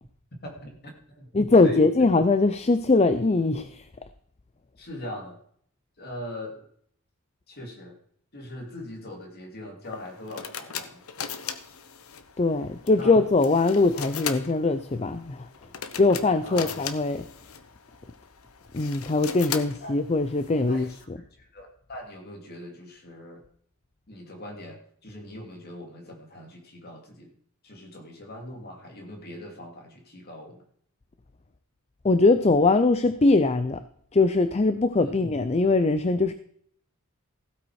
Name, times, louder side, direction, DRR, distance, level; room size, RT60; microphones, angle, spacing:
voice 1, 0.4-1.3 1.6-1.9 4.8-5.4 6.0-6.7 7.5-8.0 8.3-11.0 12.9-13.2 16.4-16.7 19.8-20.0 20.6-21.1 21.4-23.4 24.1-27.3 27.6-30.6 35.0-35.2, left 1 dB, 45° left, 2 dB, 2.9 m, -41 dB
voice 2, 1.3-3.8 12.4-15.5 16.0-17.2 18.7-20.9 32.0-33.8 34.1-36.3, left 3 dB, 30° left, 11 dB, 0.5 m, -21 dB
sound 1, 9.8-21.0, left 7 dB, 85° left, 1.0 m, -39 dB
15.5 x 8.5 x 4.8 m, 0.63 s
head